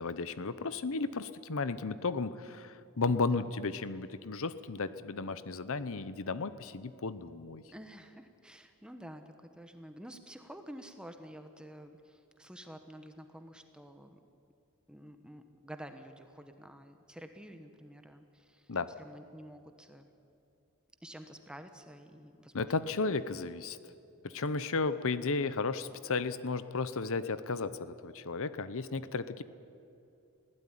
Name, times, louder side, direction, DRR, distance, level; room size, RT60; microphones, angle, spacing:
voice 1, 0.0-7.6 18.7-18.9 22.5-23.8 24.2-29.4, left 4 dB, 65° left, 14 dB, 0.8 m, -34 dB
voice 2, 3.1-3.5 7.6-14.2 14.9-18.7 19.0-20.1 21.0-22.9, equal, 5° right, 7 dB, 1.1 m, -50 dB
21.0 x 16.5 x 10.0 m, 2.7 s
head